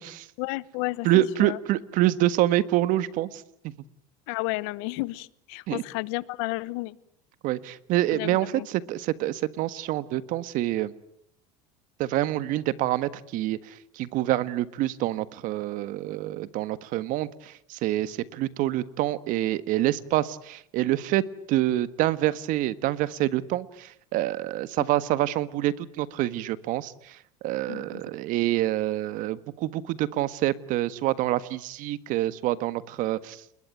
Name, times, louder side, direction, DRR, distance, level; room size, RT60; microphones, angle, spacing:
voice 1, 0.4-1.6 4.3-7.0 8.1-8.7 27.7-28.0, left 22 dB, 75° left, 20 dB, 1.1 m, -32 dB
voice 2, 1.0-3.4 5.7-5.8 7.4-10.9 12.0-21.2 21.5-27.2 27.4-33.4, right 15 dB, 60° right, 15 dB, 1.5 m, -26 dB
30.0 x 21.0 x 9.2 m, 0.72 s
supercardioid pair, 130°, 16 cm